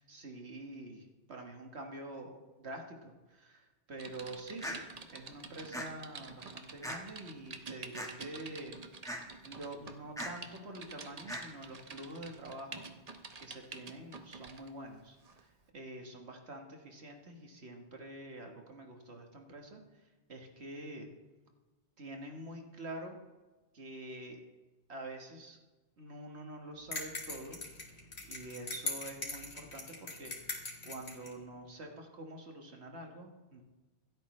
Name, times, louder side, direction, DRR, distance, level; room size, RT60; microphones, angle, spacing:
voice 1, 0.0-4.8 5.1-8.8 9.4-12.9 13.4-21.1 22.0-23.2 23.7-24.4 24.9-25.6 26.0-27.6 28.3-33.6, right 1 dB, 75° right, 3 dB, 1.7 m, -46 dB
Typing, 4.0-14.7 15.2-15.4, right 4 dB, 40° right, 0.9 m, -49 dB
sound 1, 4.6-4.8 5.7-5.9 6.8-7.0 7.9-8.1 9.0-9.2 10.2-10.3 11.3-11.4, equal, 5° left, 1.4 m, -38 dB
sound 2, 26.9-31.3, left 2 dB, 75° left, 2.5 m, -40 dB
26.0 x 8.7 x 3.2 m, 1.2 s
omnidirectional pair, 1.1 m